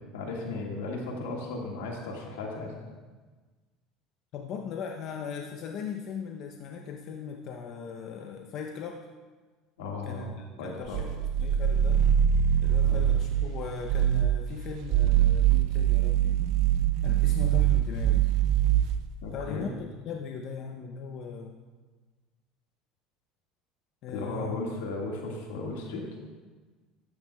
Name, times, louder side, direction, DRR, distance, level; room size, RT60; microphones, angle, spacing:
voice 1, 0.1-2.8 9.8-11.0 12.8-13.0 19.2-19.7 24.1-26.1, left 3 dB, 90° left, 0 dB, 1.7 m, -36 dB
voice 2, 4.3-9.0 10.1-10.3 10.6-12.0 12.6-16.4 17.0-18.3 19.3-21.6 24.0-24.6, left 6 dB, 55° left, 2 dB, 0.7 m, -39 dB
sound 1, 10.9-13.5 13.9-14.4 14.8-19.1, right 10 dB, 65° right, 0.5 m, -23 dB
12.5 x 8.9 x 2.3 m, 1.4 s
supercardioid pair, 105°, 0 cm